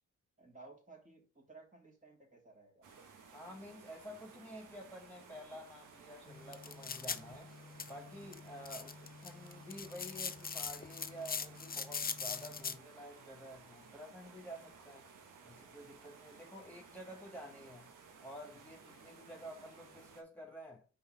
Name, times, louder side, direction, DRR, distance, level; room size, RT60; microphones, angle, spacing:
voice 1, 0.4-2.9, right 3 dB, 25° right, 3.1 m, -57 dB
sound 1, 2.8-20.2, right 5 dB, 90° right, 1.4 m, -58 dB
voice 2, 3.3-7.5 7.9-15.1 15.4-17.9 18.2-20.9, equal, 5° left, 2.5 m, -50 dB
sound 2, 6.3-12.8, left 5 dB, 30° left, 0.7 m, -43 dB
5.5 x 4.5 x 5.0 m
cardioid pair, 65°, 31 cm